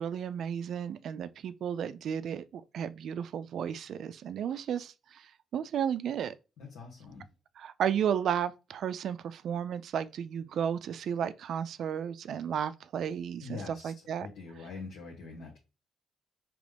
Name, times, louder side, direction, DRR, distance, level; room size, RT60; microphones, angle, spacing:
voice 1, 0.0-5.3 5.5-6.3 7.6-14.3, right 8 dB, 70° right, 0.3 m, -33 dB
voice 2, 6.6-7.3 13.4-13.9 14.2-15.6, left 4 dB, 90° left, 1.1 m, -44 dB
5.1 x 3.0 x 3.3 m
cardioid pair, 100°, 0 cm